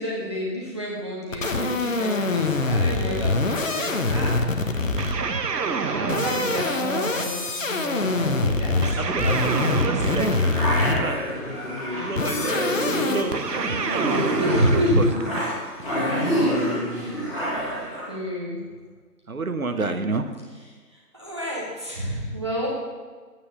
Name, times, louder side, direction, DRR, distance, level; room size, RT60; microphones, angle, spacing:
voice 1, 0.0-4.7 5.8-9.4 9.8-10.4 14.4-15.0 16.2-16.3 18.1-18.6 21.1-22.7, equal, 15° right, -5 dB, 1.4 m, -28 dB
sound 1, 1.3-5.4 6.0-11.2 12.2-13.2, left 3 dB, 55° left, 1.3 m, -24 dB
sound 2, 5.0-7.6 8.8-11.4 13.3-15.9, right 5 dB, 90° right, 1.0 m, -29 dB
voice 2, 9.0-9.4 9.7-10.4 11.0-11.3 11.9-13.5 13.9-15.1 19.3-20.3, right 3 dB, 60° right, 8 dB, 1.1 m, -30 dB
sound 3, 10.4-18.1, equal, 5° left, 2.3 m, -27 dB
10.0 x 9.2 x 6.7 m, 1.5 s
figure-of-eight pair, 170°, 47 cm